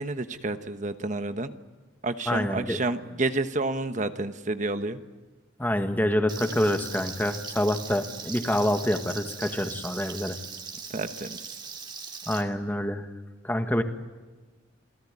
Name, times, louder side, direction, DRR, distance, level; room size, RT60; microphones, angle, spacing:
voice 1, 0.0-1.5 2.0-5.0 10.9-11.4, right 2 dB, 40° right, 9 dB, 1.2 m, -30 dB
voice 2, 2.3-2.8 5.6-10.4 12.3-13.1 13.4-13.8, left 1 dB, 10° left, 6 dB, 1.8 m, -26 dB
Frying (food), 6.3-12.4, right 5 dB, 25° right, 2.7 m, -40 dB
28.5 x 18.0 x 9.8 m, 1.2 s
head